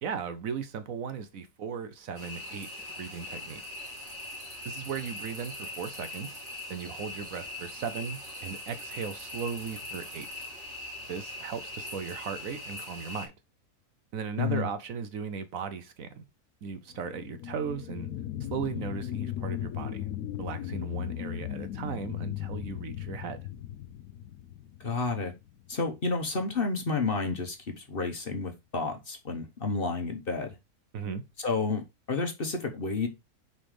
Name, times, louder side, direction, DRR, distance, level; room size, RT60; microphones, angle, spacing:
voice 1, 0.0-3.6 4.6-6.4 6.7-10.5 11.1-13.3 14.1-16.3 16.6-18.1 18.5-20.1 20.4-23.4 30.9-31.2, right 6 dB, 65° right, 1.1 m, -37 dB
sound 1, 2.1-13.3, left 1 dB, 50° right, 3.5 m, -41 dB
voice 2, 14.4-14.7 24.8-25.3 25.7-30.5 31.4-31.8 32.1-33.1, left 4 dB, 40° left, 1.2 m, -30 dB
sound 2, 16.9-26.0 26.4-26.5, left 11 dB, 75° left, 1.1 m, -37 dB
5.5 x 4.1 x 4.9 m
omnidirectional pair, 1.6 m